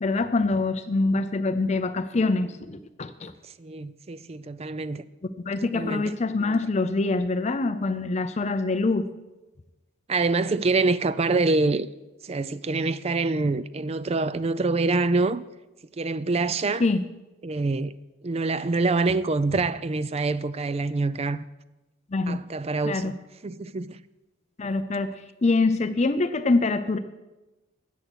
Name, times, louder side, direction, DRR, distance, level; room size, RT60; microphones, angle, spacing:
voice 1, 0.0-3.3 5.4-9.1 16.8-17.0 22.1-22.4 22.8-23.1 24.6-25.1 25.4-27.0, left 3 dB, 35° left, 0.5 m, -24 dB
voice 2, 3.4-5.0 5.6-6.1 10.1-11.9 12.2-15.4 16.0-16.8 17.4-17.9 18.2-21.4 22.3-23.2 23.4-24.0, right 3 dB, 30° right, 0.4 m, -25 dB
13.0 x 8.7 x 6.3 m
head